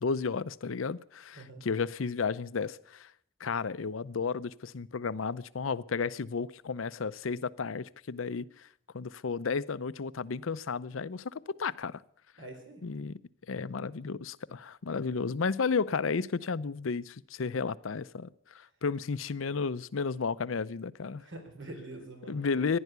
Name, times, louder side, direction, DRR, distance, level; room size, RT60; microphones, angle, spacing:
voice 1, 0.0-3.1 3.4-8.7 8.9-12.0 12.8-13.2 13.5-21.2 22.3-22.8, left 5 dB, 90° left, 0.6 m, -33 dB
voice 2, 12.4-12.8 21.2-22.8, right 2 dB, 65° right, 3.8 m, -45 dB
15.5 x 11.0 x 8.1 m
head